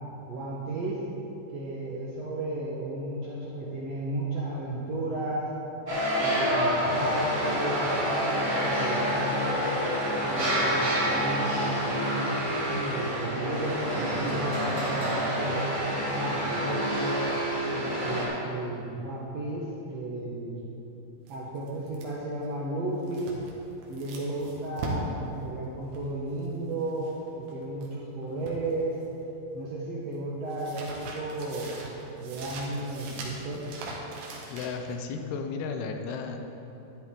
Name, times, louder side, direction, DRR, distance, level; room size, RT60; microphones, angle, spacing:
voice 1, 0.3-1.1 1.5-5.5 6.2-8.0 8.4-9.9 10.2-15.7 16.2-17.3 17.7-20.6 21.3-23.4 23.9-29.0 29.5-31.8 32.2-33.7, right 2 dB, 65° right, -5 dB, 1.7 m, -34 dB
sound 1, 5.9-18.3, equal, 25° right, 2.3 m, -28 dB
sound 2, 21.3-28.0 28.2-29.4 29.6-34.9, right 2 dB, 90° right, 3.4 m, -40 dB
voice 2, 34.5-36.5, left 5 dB, 85° left, 5 dB, 2.8 m, -34 dB
12.5 x 11.0 x 3.8 m, 3.0 s
omnidirectional pair, 4.5 m